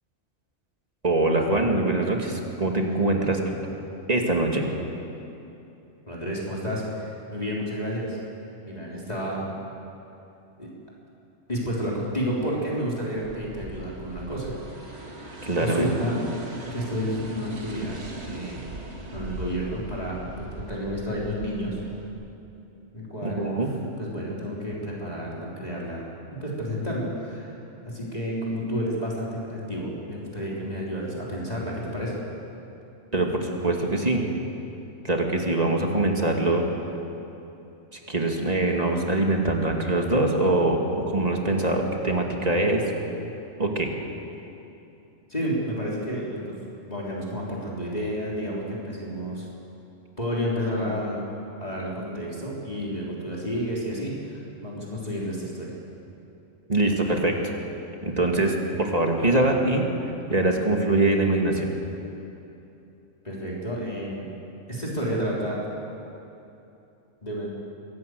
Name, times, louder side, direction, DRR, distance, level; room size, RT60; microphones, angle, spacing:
voice 1, 1.0-3.4 4.1-4.7 15.4-15.9 23.2-23.7 33.1-34.2 35.0-36.6 37.9-42.8 43.6-43.9 56.7-57.4 58.0-59.9 60.3-61.7, right 2 dB, 30° right, 1 dB, 2.4 m, -23 dB
voice 2, 6.1-8.2 8.6-9.5 10.6-10.7 11.5-14.5 15.6-16.2 16.7-18.6 19.1-21.8 22.9-23.7 24.0-27.6 27.8-32.2 45.3-46.6 46.9-49.5 50.2-51.2 51.6-55.8 63.2-64.3 64.7-65.6 67.2-67.5, equal, 30° left, -5 dB, 3.9 m, -30 dB
sound 1, 13.2-22.1, right 2 dB, 55° right, 2.2 m, -40 dB
24.0 x 17.5 x 7.9 m, 2.9 s
omnidirectional pair, 1.3 m